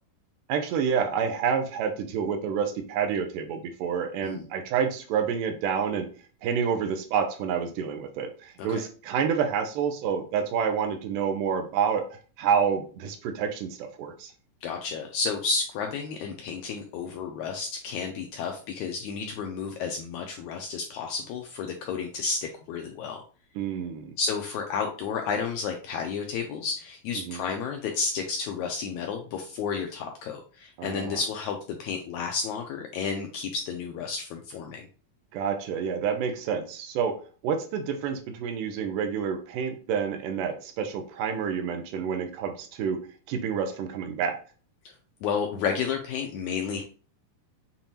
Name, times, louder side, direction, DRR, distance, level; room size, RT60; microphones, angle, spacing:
voice 1, 0.5-6.1 6.4-14.3 23.6-24.1 27.2-27.4 30.8-31.2 35.3-37.2 37.4-43.0 43.3-44.4, right 7 dB, 85° right, 6 dB, 2.2 m, -28 dB
voice 2, 14.6-23.2 24.2-34.9 45.2-46.8, left 5 dB, 85° left, 3 dB, 1.7 m, -31 dB
7.0 x 2.6 x 2.9 m, 0.40 s
omnidirectional pair, 3.9 m